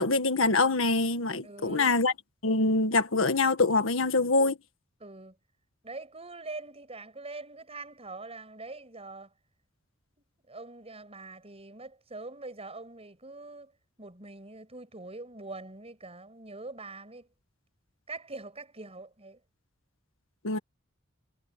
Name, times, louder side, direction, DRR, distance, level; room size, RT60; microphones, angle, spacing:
voice 1, 0.0-2.1 2.4-4.6 20.4-20.6, left 3 dB, 75° left, 1.7 m, -24 dB
voice 2, 1.4-1.9 5.0-5.3 5.8-9.3 10.5-13.7 14.0-17.3 18.1-19.4, right 3 dB, 30° right, 6.7 m, -43 dB
head